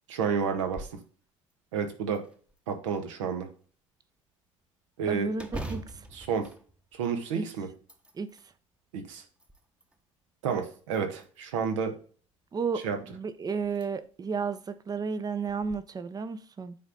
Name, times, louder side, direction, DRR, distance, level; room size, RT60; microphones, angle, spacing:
voice 1, 0.1-0.9 1.7-2.2 2.7-3.5 5.0-5.3 6.1-6.5 6.9-7.7 8.9-9.2 10.4-11.9 12.8-13.0, right 6 dB, 65° right, 6 dB, 1.5 m, -30 dB
sound 1, 0.5-1.0 1.5-1.6 2.1-2.9 5.3-7.3 7.7-8.5 9.1-10.0 10.9-11.5 13.0-13.1 13.6-13.9 14.3-14.4 15.5-15.8, right 1 dB, 5° right, 1.1 m, -43 dB
voice 2, 5.1-6.0 7.3-7.5 8.1-8.3 12.5-16.8, right 5 dB, 25° right, 13 dB, 0.8 m, -33 dB
9.4 x 4.1 x 3.8 m, 0.41 s
figure-of-eight pair, 70°, 17 cm